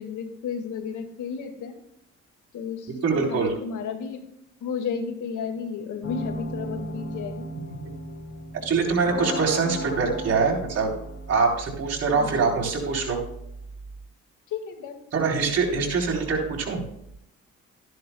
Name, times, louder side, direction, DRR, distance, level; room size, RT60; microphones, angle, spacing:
voice 1, 0.0-1.7 2.5-4.2 4.6-7.5 12.2-12.4 14.5-15.0, left 6 dB, 80° left, 5 dB, 2.1 m, -33 dB
voice 2, 2.9-3.5 8.5-10.9 11.3-13.2 15.1-16.8, right 4 dB, 55° right, -1 dB, 4.0 m, -24 dB
sound 1, 6.0-11.4, equal, 60° left, 2.3 m, -35 dB
14.0 x 10.5 x 2.3 m, 0.77 s
cardioid pair, 90°, 30 cm